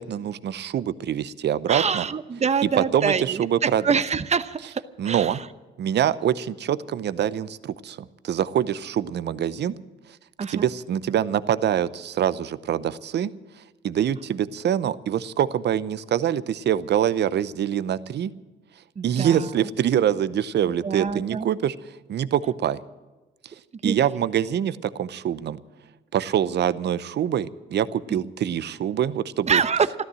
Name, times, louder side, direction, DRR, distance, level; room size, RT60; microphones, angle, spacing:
voice 1, 0.0-2.1 2.8-3.8 5.0-5.4 5.8-9.7 10.5-13.3 13.8-18.3 19.0-21.8 22.1-22.8 23.8-25.6 26.1-29.6, right 10 dB, 60° right, 15 dB, 0.8 m, -25 dB
voice 2, 1.7-5.5 10.4-10.7 19.0-19.5 20.8-21.5 23.8-24.0 28.1-28.2 29.5-29.9, right 6 dB, 35° right, 13 dB, 0.9 m, -25 dB
14.0 x 13.0 x 7.7 m, 1.2 s
cardioid pair, 90°, 20 cm